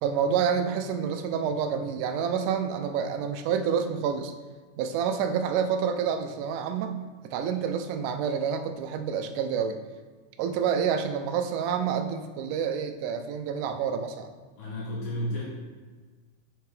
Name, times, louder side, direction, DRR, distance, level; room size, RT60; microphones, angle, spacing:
voice 1, 0.0-4.3 4.8-7.0 7.3-9.8 10.4-14.3, right 7 dB, 80° right, 7 dB, 2.0 m, -28 dB
voice 2, 14.6-15.4, equal, 80° left, -8 dB, 3.4 m, -32 dB
6.6 x 5.9 x 3.4 m, 1.4 s
omnidirectional pair, 3.8 m